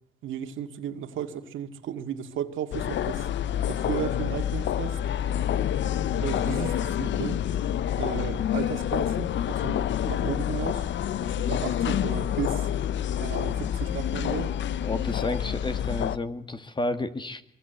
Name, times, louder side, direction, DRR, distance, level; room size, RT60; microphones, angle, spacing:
voice 1, 0.2-3.3 3.7-5.0 6.2-7.4 8.0-10.9 11.2-12.7 13.1-14.5, right 9 dB, 80° right, 2.2 m, -34 dB
sound 1, 2.7-16.2, left 10 dB, 70° left, 0.9 m, -28 dB
voice 2, 14.8-17.4, left 2 dB, 25° left, 2.1 m, -31 dB
23.5 x 23.0 x 8.2 m
cardioid pair, 90°, 20 cm